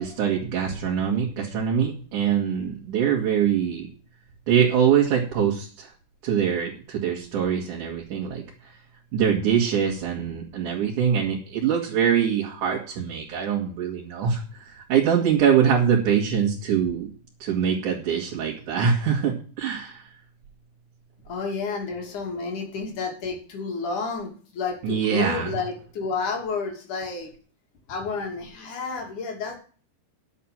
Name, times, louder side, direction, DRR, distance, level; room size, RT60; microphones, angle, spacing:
voice 1, 0.0-3.9 4.5-5.9 6.2-8.7 9.1-17.1 17.4-20.1 24.8-25.6, right 8 dB, 70° right, -2 dB, 3.6 m, -23 dB
voice 2, 21.3-27.3 27.9-29.6, left 4 dB, 70° left, 3 dB, 4.0 m, -30 dB
11.0 x 7.8 x 7.3 m, 0.40 s
omnidirectional pair, 3.7 m